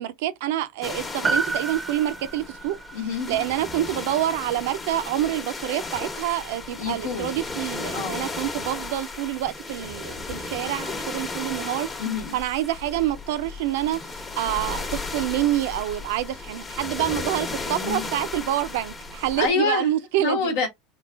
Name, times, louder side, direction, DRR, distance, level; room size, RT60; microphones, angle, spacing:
voice 1, 0.0-2.8 3.3-11.9 12.3-14.0 14.4-20.5, right 13 dB, 75° right, 0.4 m, -27 dB
sound 1, 0.8-19.5, left 3 dB, 25° left, 0.9 m, -35 dB
Piano, 1.2-5.8 6.1-6.2, right 4 dB, 20° right, 0.5 m, -32 dB
voice 2, 2.9-3.4 6.8-7.3 7.9-8.3 12.0-12.4 17.7-18.1 19.4-19.9 20.2-20.7, left 5 dB, 75° left, 1.0 m, -27 dB
3.8 x 2.4 x 2.3 m
hypercardioid pair, 90°, 0 cm